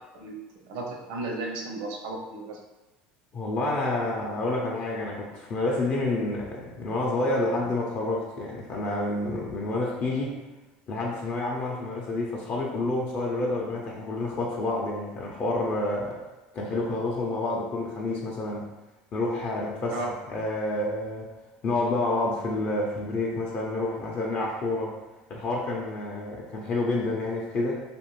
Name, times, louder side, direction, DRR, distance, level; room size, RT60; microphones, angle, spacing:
voice 1, 0.6-2.6 19.9-20.1, right 2 dB, 75° right, -1 dB, 0.7 m, -34 dB
voice 2, 3.3-10.4 10.9-16.2 16.5-18.7 19.1-21.3 21.6-25.0 25.3-27.8, left 2 dB, 45° left, -2 dB, 0.6 m, -29 dB
2.5 x 2.4 x 3.1 m, 1.1 s
supercardioid pair, 95°, 4 cm